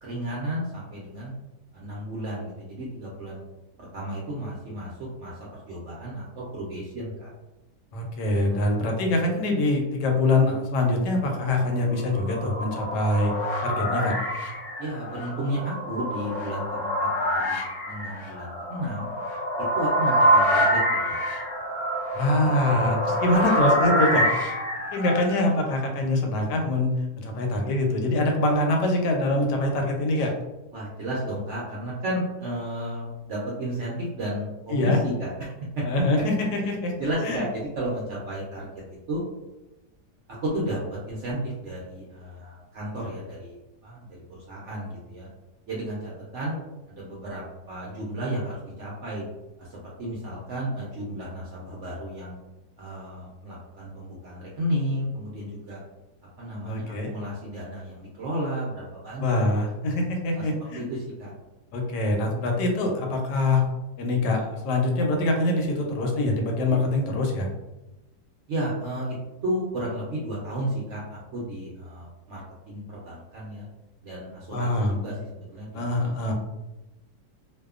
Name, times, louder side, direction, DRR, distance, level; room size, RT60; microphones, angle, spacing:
voice 1, 0.0-1.3 1.7-3.4 3.8-7.3 8.5-8.7 14.8-19.1 19.6-20.8 21.1-21.2 22.4-22.8 30.7-35.8 36.6-36.7 37.0-38.7 39.1-39.2 40.4-43.6 43.8-44.0 44.3-45.3 45.7-46.6 46.9-49.2 49.6-52.3 52.8-55.8 56.4-59.2 60.3-60.5 60.7-61.3 68.5-69.2 69.4-72.4 72.7-73.7 74.0-75.9, right 1 dB, 70° right, -5 dB, 0.7 m, -33 dB
voice 2, 7.9-13.3 13.6-14.2 22.1-24.4 24.9-30.3 34.7-35.0 35.8-36.9 37.2-37.4 56.7-57.1 59.2-60.8 61.7-63.6 64.0-67.5 74.5-75.0 75.7-76.3, left 2 dB, 90° left, 2 dB, 1.2 m, -24 dB
sound 1, 11.9-25.3, equal, 50° left, 0.8 m, -26 dB
2.7 x 2.2 x 2.3 m, 1.0 s
omnidirectional pair, 1.8 m